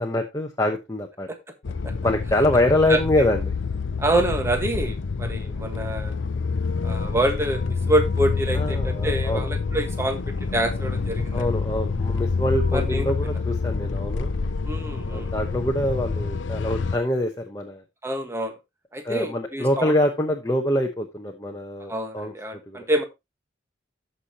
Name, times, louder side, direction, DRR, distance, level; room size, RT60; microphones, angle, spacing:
voice 1, 0.0-1.3 2.0-3.5 8.5-9.5 11.3-14.3 15.1-17.8 19.0-22.3 22.7-22.9, left 1 dB, 20° left, 2 dB, 1.0 m, -25 dB
sound 1, 1.6-17.0, left 4 dB, 80° left, 0.6 m, -27 dB
voice 2, 2.9-3.3 4.0-6.2 6.8-10.2 10.5-11.5 12.7-13.4 14.6-15.3 18.0-18.5 18.9-19.9 21.9-23.0, right 1 dB, 15° right, 6 dB, 1.4 m, -26 dB
13.5 x 5.7 x 2.9 m, 0.22 s
head